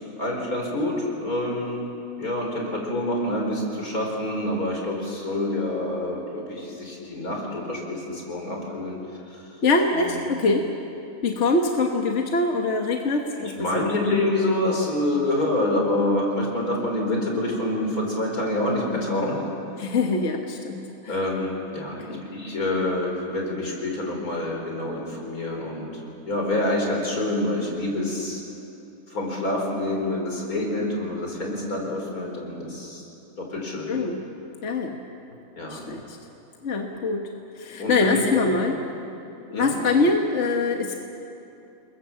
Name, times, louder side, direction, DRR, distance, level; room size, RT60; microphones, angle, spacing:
voice 1, 0.2-1.9 2.2-9.0 10.1-10.4 13.4-19.4 21.1-25.9 26.2-28.4 29.1-33.1 33.4-34.0 35.6-35.8 37.8-38.7 39.5-40.1, left 1 dB, 85° left, 0 dB, 5.1 m, -27 dB
voice 2, 9.6-10.7 11.2-13.9 19.8-21.2 22.1-22.2 33.9-34.2 34.6-35.0 35.7-36.2 36.6-37.3 37.6-38.8 39.5-40.9, left 3 dB, 55° left, 2 dB, 1.7 m, -24 dB
28.5 x 21.5 x 7.4 m, 2.9 s
omnidirectional pair, 1.5 m